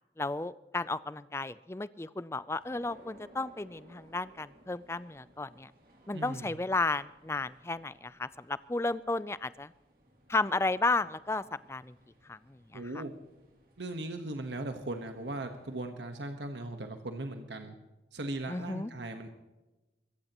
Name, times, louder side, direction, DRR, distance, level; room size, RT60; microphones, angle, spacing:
voice 1, 0.2-5.7 6.1-9.7 10.3-11.4 11.7-11.9 12.3-12.4 12.7-13.0 18.5-18.9, left 3 dB, 15° left, 16 dB, 0.4 m, -33 dB
sound 1, 2.5-15.9, right 1 dB, 55° right, 2.6 m, -61 dB
voice 2, 6.1-6.5 12.7-13.1 13.8-17.7 18.1-19.3, right 2 dB, 90° right, 6 dB, 1.3 m, -38 dB
24.5 x 14.5 x 3.0 m, 1.1 s
head